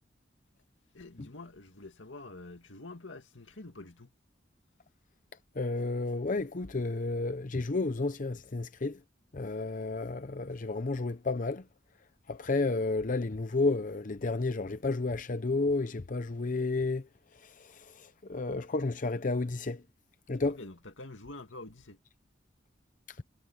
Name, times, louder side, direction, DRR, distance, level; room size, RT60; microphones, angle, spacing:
voice 1, 0.9-4.1 20.4-22.0, left 2 dB, 90° left, 2.3 m, -47 dB
voice 2, 5.5-9.0 9.3-11.7 12.3-19.8 20.3-20.6 23.1-23.2, left 3 dB, 45° left, 0.7 m, -32 dB
head